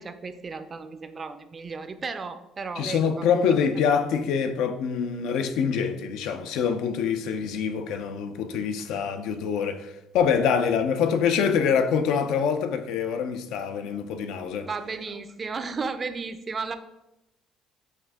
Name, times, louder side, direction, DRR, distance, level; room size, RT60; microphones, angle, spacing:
voice 1, 0.0-3.3 14.6-16.8, right 4 dB, 30° right, 0.4 m, -34 dB
voice 2, 2.8-14.7, left 7 dB, 80° left, 0.4 m, -25 dB
5.6 x 2.6 x 3.4 m
cardioid pair, 105°, 0 cm